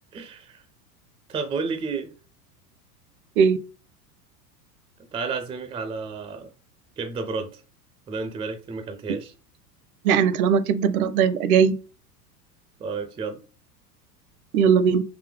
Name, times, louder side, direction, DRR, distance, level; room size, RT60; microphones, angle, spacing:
voice 1, 0.1-0.6 1.3-2.1 5.1-6.5 7.0-7.6 8.1-9.3 12.8-13.4, right 4 dB, 10° right, 0.4 m, -31 dB
voice 2, 10.0-11.7 14.5-15.0, right 7 dB, 65° right, 0.7 m, -19 dB
4.1 x 2.7 x 3.2 m
hypercardioid pair, 90°, 47 cm